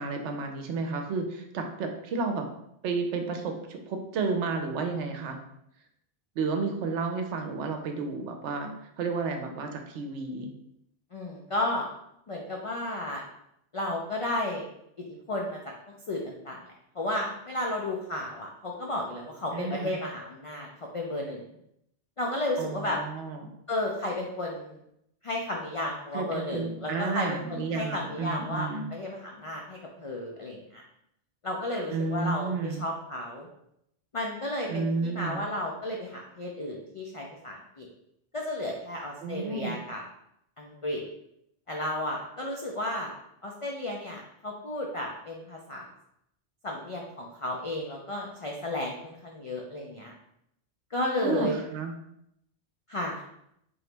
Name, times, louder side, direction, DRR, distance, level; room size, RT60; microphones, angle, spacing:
voice 1, 0.0-2.5 2.8-5.4 6.4-8.7 9.0-10.5 19.5-20.0 22.6-23.5 26.1-28.9 31.9-32.9 34.7-35.4 39.2-39.8 51.2-51.9, right 4 dB, 80° right, 5 dB, 0.9 m, -31 dB
voice 2, 11.1-11.9 12.3-13.2 13.7-14.7 15.3-15.6 16.1-16.6 17.0-20.7 20.9-21.4 22.2-23.0 23.7-24.8 25.2-30.8 31.4-33.5 34.1-37.9 38.3-40.0 40.6-41.0 41.7-43.1 43.4-45.9 46.6-50.1 50.9-51.6 52.9-53.2, left 1 dB, 60° left, -1 dB, 0.3 m, -33 dB
3.8 x 2.9 x 3.2 m, 0.78 s
omnidirectional pair, 1.2 m